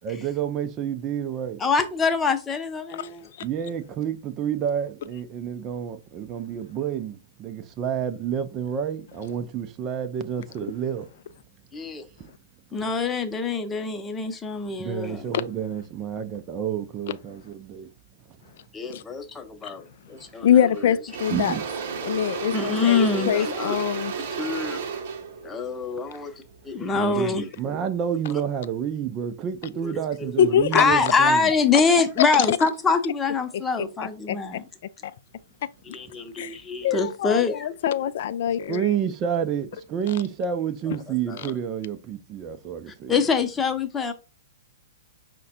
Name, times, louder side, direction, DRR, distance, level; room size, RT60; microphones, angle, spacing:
voice 1, 0.0-1.6 3.4-11.1 12.2-12.3 14.8-17.9 21.3-21.6 26.9-31.5 38.7-43.1, right 8 dB, 30° right, 0.5 m, -29 dB
voice 2, 1.6-3.3 11.7-12.0 12.7-15.3 18.7-20.5 22.5-23.8 24.2-24.8 25.4-26.3 26.6-27.5 29.8-29.9 30.2-30.3 30.7-34.6 35.9-37.7 41.3-41.4 43.1-44.1, left 4 dB, 15° left, 0.8 m, -24 dB
Engine / Drill, 20.2-20.4 20.7-26.9, right 6 dB, 50° right, 0.9 m, -33 dB
voice 3, 20.4-21.6 22.0-24.1 30.4-30.8 32.5-32.6 33.8-33.9 34.3-34.6 35.9-36.0 36.4-36.6 36.8-38.9, left 9 dB, 50° left, 0.3 m, -23 dB
5.6 x 2.2 x 4.1 m
figure-of-eight pair, 110°, 0 cm